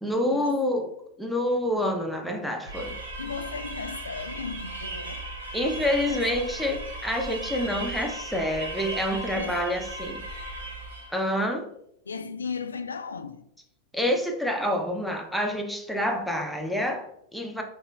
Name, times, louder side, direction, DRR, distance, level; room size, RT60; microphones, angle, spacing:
voice 1, 0.0-0.9 1.2-3.0 5.5-10.2 11.1-11.7 13.9-17.6, left 1 dB, ahead, 0.6 m, -27 dB
sound 1, 2.7-11.2, right 2 dB, 65° right, 0.8 m, -36 dB
voice 2, 3.2-5.2 5.8-6.5 9.3-9.9 12.1-13.5, left 5 dB, 75° left, 0.3 m, -36 dB
6.1 x 2.4 x 2.3 m
figure-of-eight pair, 90°, 0 cm